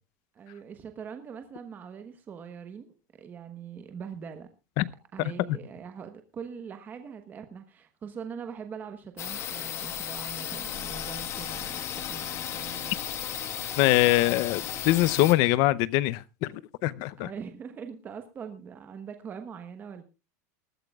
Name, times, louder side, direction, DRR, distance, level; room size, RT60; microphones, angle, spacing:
voice 1, 0.3-4.5 5.1-13.0 13.3-13.4 14.3-14.4 17.2-20.0, right 6 dB, 20° right, 1.1 m, -42 dB
sound 1, 9.2-15.3, left 10 dB, 30° left, 1.4 m, -35 dB
voice 2, 13.8-17.3, left 17 dB, 45° left, 0.6 m, -23 dB
20.5 x 13.0 x 2.3 m
supercardioid pair, 160°, 9 cm